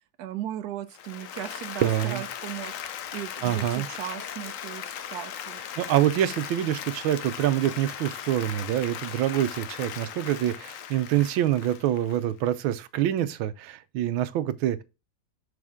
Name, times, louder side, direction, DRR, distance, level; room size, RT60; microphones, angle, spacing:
voice 1, 0.2-2.7 3.1-5.6, right 12 dB, 65° right, 1.1 m, -37 dB
Applause, 0.9-12.6, left 9 dB, 80° left, 0.7 m, -38 dB
voice 2, 1.8-2.2 3.4-3.9 5.8-14.8, right 12 dB, 85° right, 1.4 m, -26 dB
6.4 x 4.2 x 3.5 m
omnidirectional pair, 2.1 m